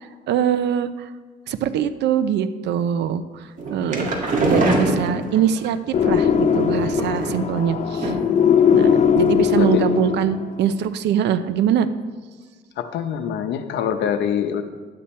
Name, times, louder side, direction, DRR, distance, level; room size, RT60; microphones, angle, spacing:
voice 1, 0.3-1.1 1.5-3.4 3.7-4.1 4.4-8.1 8.7-11.9, right 9 dB, 80° right, 12 dB, 0.6 m, -23 dB
sound 1, 3.6-5.7 6.7-7.6 8.0-8.4 8.7-8.8 9.2-9.3, right 2 dB, 45° right, 2.0 m, -23 dB
sound 2, 5.9-10.6, left 7 dB, 40° left, 0.7 m, -19 dB
voice 2, 12.8-14.6, left 8 dB, 85° left, 8 dB, 0.8 m, -24 dB
12.0 x 8.7 x 4.3 m, 1.4 s
cardioid pair, 115°, 18 cm